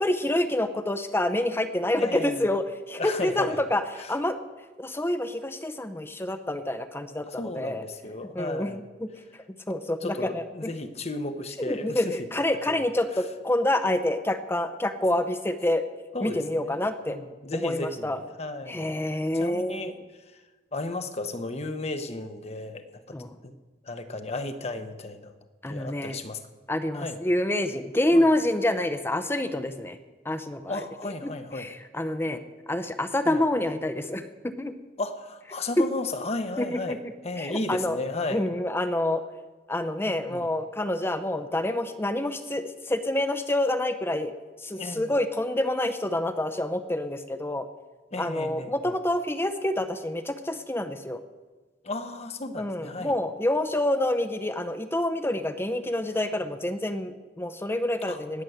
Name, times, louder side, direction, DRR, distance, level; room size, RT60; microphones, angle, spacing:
voice 1, 0.0-4.4 4.8-7.8 8.3-9.1 9.7-10.4 11.6-15.8 16.2-17.2 17.5-18.2 18.7-19.9 23.1-23.3 25.6-26.2 26.7-30.0 30.2-32.4 32.7-34.7 35.8-35.9 36.6-37.0 37.4-38.0 38.3-39.2 39.7-44.3 44.6-47.7 48.2-51.2 52.6-58.4, left 1 dB, 15° left, 10 dB, 0.7 m, -27 dB
voice 2, 2.0-2.5 3.0-3.6 4.0-4.1 7.3-8.8 10.0-12.2 12.7-12.8 16.1-18.9 19.3-20.0 20.3-20.4 20.7-23.2 23.4-23.6 23.8-25.3 25.7-26.4 26.9-27.2 28.1-28.3 30.7-31.7 33.2-33.4 35.0-38.4 40.1-40.5 44.8-45.1 48.1-48.9 51.8-53.2 58.1-58.2, left 2 dB, 40° left, 8 dB, 1.0 m, -34 dB
19.5 x 7.1 x 7.9 m, 1.3 s
head